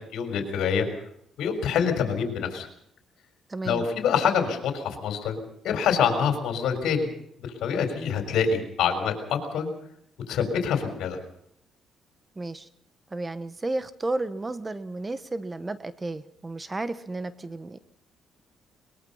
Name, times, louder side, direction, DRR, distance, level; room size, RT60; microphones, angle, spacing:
voice 1, 0.1-0.9 1.4-2.7 3.6-5.4 5.6-7.1 7.4-9.7 10.3-11.2, left 7 dB, 80° left, 5 dB, 4.2 m, -26 dB
voice 2, 3.5-3.9 12.4-12.7 13.1-17.8, right 2 dB, 25° right, 14 dB, 1.1 m, -32 dB
22.0 x 21.0 x 5.6 m, 0.73 s
cardioid pair, 90°, 0 cm